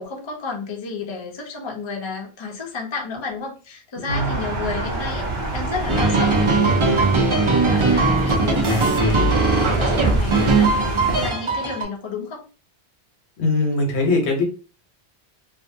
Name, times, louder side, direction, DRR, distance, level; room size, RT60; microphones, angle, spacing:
voice 1, 0.0-12.5, left 4 dB, 35° left, 0 dB, 0.5 m, -32 dB
voice 2, 4.1-4.4 13.4-14.4, left 2 dB, 80° left, 2 dB, 1.1 m, -21 dB
sound 1, 4.1-11.3, right 2 dB, 70° right, 0.9 m, -27 dB
sound 2, 5.9-11.8, right 3 dB, 40° right, 0.4 m, -19 dB
2.6 x 2.5 x 2.6 m, 0.35 s
omnidirectional pair, 1.1 m